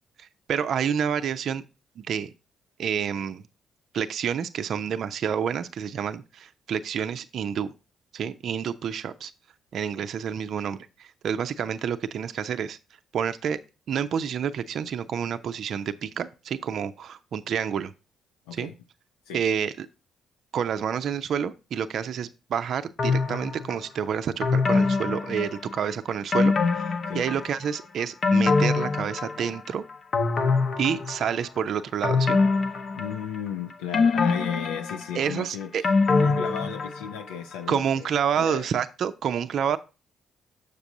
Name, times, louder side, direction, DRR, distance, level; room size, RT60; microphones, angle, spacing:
voice 1, 0.2-1.6 2.0-2.3 2.8-3.4 3.9-7.7 8.1-9.3 9.7-12.8 13.1-13.6 13.9-17.9 18.5-18.7 19.3-19.9 20.5-26.9 27.1-29.8 30.8-32.4 35.1-35.8 37.7-39.8, right 8 dB, 55° right, 0.4 m, -28 dB
sound 1, 23.0-23.8 24.4-25.9 26.3-27.6 28.0-29.7 30.1-31.5 32.0-33.5 33.9-37.2 37.5-37.6, left 4 dB, 45° left, 0.8 m, -24 dB
voice 2, 32.9-35.7 36.1-38.1 38.4-38.7, left 8 dB, 75° left, 0.4 m, -35 dB
6.9 x 6.6 x 2.6 m
figure-of-eight pair, 45°, 0 cm